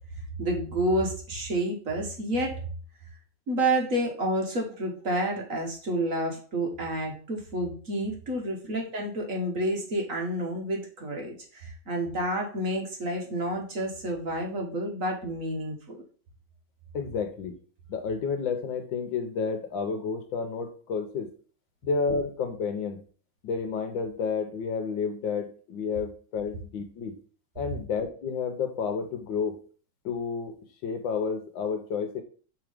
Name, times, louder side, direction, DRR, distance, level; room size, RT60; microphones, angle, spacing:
voice 1, 0.4-2.6 3.5-16.0, right 1 dB, 45° right, 1 dB, 1.4 m, -29 dB
voice 2, 16.9-17.5 17.9-21.3 21.8-23.0 23.4-27.1 27.6-29.6 30.0-32.2, left 5 dB, 70° left, 7 dB, 1.5 m, -30 dB
6.0 x 3.7 x 5.0 m, 0.41 s
omnidirectional pair, 2.2 m